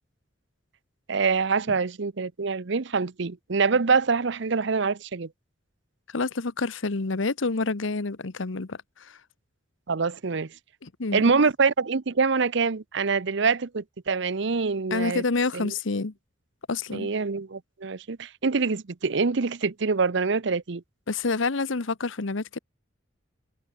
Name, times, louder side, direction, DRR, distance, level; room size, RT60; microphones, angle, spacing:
voice 1, 1.1-5.3 9.9-10.5 11.1-15.2 15.5-15.7 16.9-20.8, right 4 dB, 65° right, 0.8 m, -25 dB
voice 2, 6.1-9.2 10.8-11.2 14.9-16.1 16.7-17.1 21.1-22.6, left 3 dB, 80° left, 1.0 m, -28 dB
head